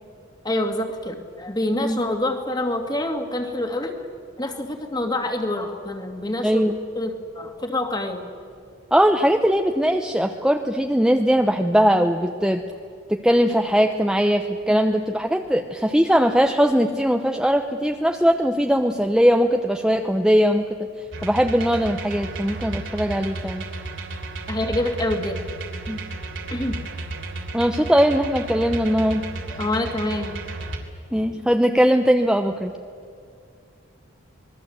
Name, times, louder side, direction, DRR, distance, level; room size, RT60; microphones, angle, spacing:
voice 1, 0.4-3.9 4.4-6.6 7.0-8.2 14.7-14.8 24.5-25.4 26.5-26.8 29.5-30.4, left 1 dB, 20° left, 5 dB, 2.4 m, -26 dB
voice 2, 6.4-6.7 8.9-12.6 13.1-20.7 21.2-23.6 25.9-26.0 27.5-29.3 31.1-32.7, equal, 5° right, 4 dB, 0.8 m, -20 dB
sound 1, 21.1-30.8, right 2 dB, 70° right, 3.2 m, -33 dB
26.5 x 21.5 x 7.9 m, 2.3 s
head